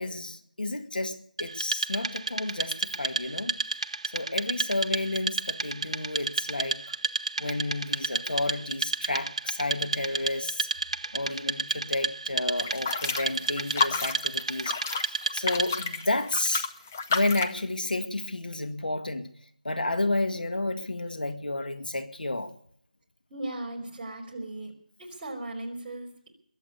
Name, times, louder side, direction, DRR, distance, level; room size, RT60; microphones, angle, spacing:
voice 1, 0.0-3.6 4.1-7.0 7.4-10.7 11.1-14.8 15.0-16.7 17.1-19.3 19.6-22.5, left 2 dB, 90° left, 2.1 m, -31 dB
Wood, 1.4-15.9, right 4 dB, 45° right, 0.9 m, -32 dB
sound 1, 12.6-17.6, left 5 dB, 15° left, 0.5 m, -31 dB
voice 2, 23.3-24.7 25.0-26.3, right 1 dB, 15° right, 3.6 m, -37 dB
22.0 x 7.8 x 8.2 m
figure-of-eight pair, 175°, 5 cm